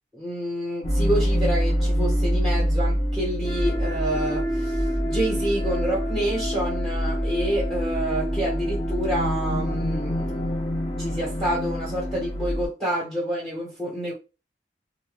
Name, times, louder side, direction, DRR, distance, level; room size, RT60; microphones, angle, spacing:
voice 1, 0.1-4.8 5.0-10.4 11.0-14.1, right 1 dB, 5° left, 1.2 m, -28 dB
sound 1, 0.8-12.7, equal, 30° left, 0.6 m, -25 dB
2.6 x 2.5 x 3.0 m
head